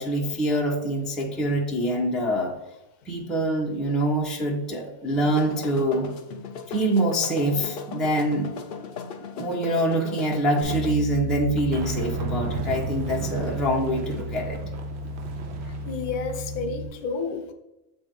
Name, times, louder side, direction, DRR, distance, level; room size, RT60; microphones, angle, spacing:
voice 1, 0.0-2.5 3.1-6.1 6.7-8.5 9.3-14.6, right 1 dB, ahead, -2 dB, 0.6 m, -25 dB
sound 1, 5.1-10.9, left 6 dB, 60° left, 0.6 m, -37 dB
Bass guitar, 10.6-16.9, right 1 dB, 40° right, 1.3 m, -32 dB
sound 2, 11.6-16.6, right 5 dB, 55° right, 0.8 m, -37 dB
voice 2, 15.9-17.5, left 4 dB, 85° left, 7 dB, 1.2 m, -30 dB
7.4 x 3.0 x 5.2 m, 0.92 s
omnidirectional pair, 1.6 m